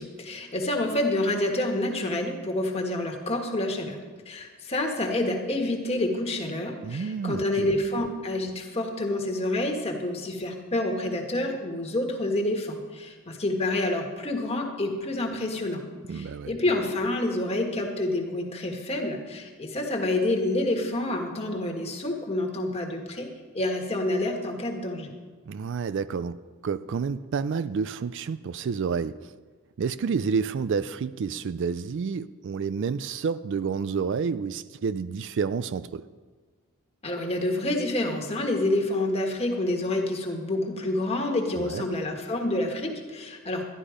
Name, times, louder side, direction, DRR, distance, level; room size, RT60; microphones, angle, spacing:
voice 1, 0.0-4.0 4.3-15.8 16.1-23.3 23.5-25.1 37.0-43.7, left 1 dB, 25° left, 2 dB, 1.6 m, -28 dB
voice 2, 6.8-7.7 16.1-16.5 25.5-29.3 29.8-36.1 41.6-41.8, right 5 dB, 55° right, 15 dB, 0.3 m, -29 dB
12.0 x 11.5 x 5.0 m, 1.5 s
head